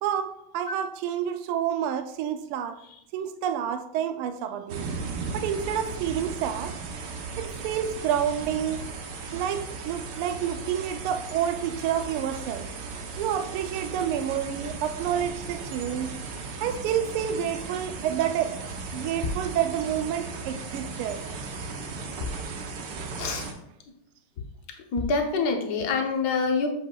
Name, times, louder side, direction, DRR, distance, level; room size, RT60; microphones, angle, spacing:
voice 1, 0.0-2.8 3.1-4.8 5.3-6.8 7.4-8.8 9.3-12.7 13.2-16.1 16.6-18.6 18.9-21.2, right 9 dB, 90° right, 8 dB, 1.5 m, -29 dB
sound 1, 4.7-23.5, right 4 dB, 65° right, 1.4 m, -36 dB
sound 2, 19.2-19.6 21.1-21.2 22.2-22.6 23.1-23.2 23.8-23.9 24.9-25.3, left 4 dB, 75° left, 1.8 m, -34 dB
voice 2, 23.2-23.5 24.9-26.7, left 4 dB, 60° left, 3 dB, 1.3 m, -26 dB
7.8 x 7.1 x 2.3 m, 0.77 s
omnidirectional pair, 2.3 m